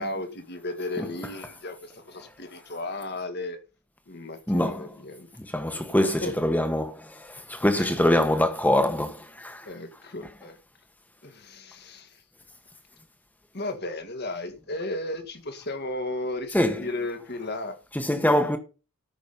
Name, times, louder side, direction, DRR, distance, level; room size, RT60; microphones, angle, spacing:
voice 1, 0.0-3.6 4.1-5.3 5.7-6.3 7.7-8.1 9.6-10.6 11.2-12.2 13.5-17.8, left 2 dB, 45° left, 1.7 m, -35 dB
voice 2, 4.5-4.9 5.4-9.7 16.5-16.9 17.9-18.6, left 1 dB, 5° left, 1.4 m, -24 dB
14.0 x 6.2 x 5.7 m
head